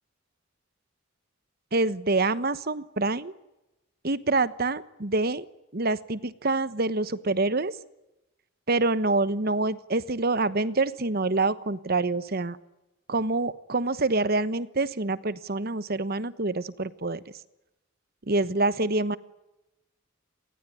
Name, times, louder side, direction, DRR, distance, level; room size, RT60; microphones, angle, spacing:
voice 1, 1.7-3.3 4.0-5.4 5.7-7.8 8.7-12.6 13.1-17.2 18.3-19.2, right 2 dB, 50° right, 15 dB, 1.2 m, -26 dB
27.5 x 20.0 x 9.9 m, 0.96 s
head